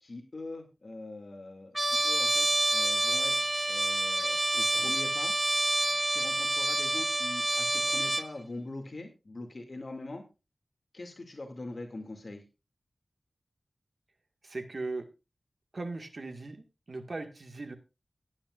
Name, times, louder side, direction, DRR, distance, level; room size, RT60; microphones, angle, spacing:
voice 1, 0.0-5.3 6.1-10.2 10.9-12.4, left 2 dB, 55° left, 3 dB, 2.4 m, -43 dB
Trumpet, 1.8-8.3, right 1 dB, 15° right, 0.8 m, -28 dB
voice 2, 14.4-15.1 15.7-17.8, right 3 dB, 60° right, 6 dB, 1.8 m, -38 dB
17.5 x 9.8 x 2.5 m, 0.28 s
wide cardioid pair, 60°, 0 cm